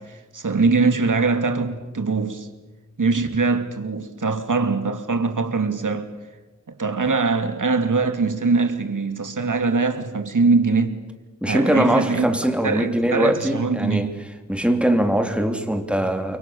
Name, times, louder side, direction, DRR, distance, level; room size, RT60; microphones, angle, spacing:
voice 1, 0.0-2.5 3.0-6.1 6.7-11.0 11.4-12.3 12.6-14.1, right 4 dB, 80° right, 2.6 m, -22 dB
voice 2, 11.4-14.1 14.5-16.4, right 1 dB, 5° right, 3.3 m, -21 dB
30.0 x 24.0 x 7.1 m
wide cardioid pair, 75°, 31 cm